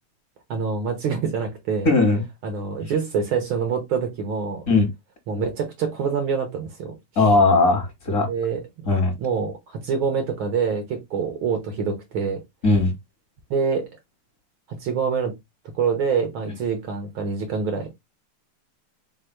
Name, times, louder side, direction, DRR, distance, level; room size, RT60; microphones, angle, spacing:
voice 1, 0.5-1.9 2.4-4.7 5.3-7.2 8.3-8.9 9.2-12.4 13.5-13.9 14.7-15.3 15.7-17.9, right 5 dB, 80° right, 1.1 m, -26 dB
voice 2, 1.8-2.2 4.7-4.9 7.2-8.3 8.9-9.1 12.6-12.9, left 3 dB, 50° left, 1.0 m, -18 dB
5.0 x 2.1 x 4.3 m
omnidirectional pair, 3.5 m